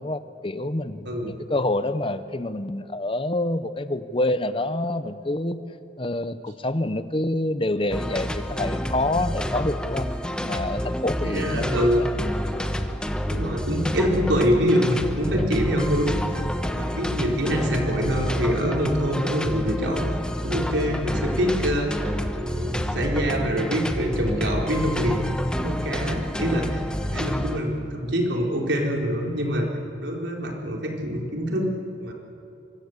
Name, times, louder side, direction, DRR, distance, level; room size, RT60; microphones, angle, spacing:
voice 1, 0.0-5.6 6.0-10.1 10.4-12.1, left 1 dB, 30° left, 12 dB, 0.9 m, -27 dB
sound 1, 7.9-27.6, equal, 5° left, 1.1 m, -28 dB
voice 2, 11.2-12.0 13.3-16.1 16.7-20.1 20.4-22.0 22.4-25.2 25.5-26.8 27.1-29.7 30.0-31.7 32.0-32.1, equal, 85° right, 0 dB, 4.4 m, -25 dB
25.0 x 23.5 x 8.2 m, 2.8 s
head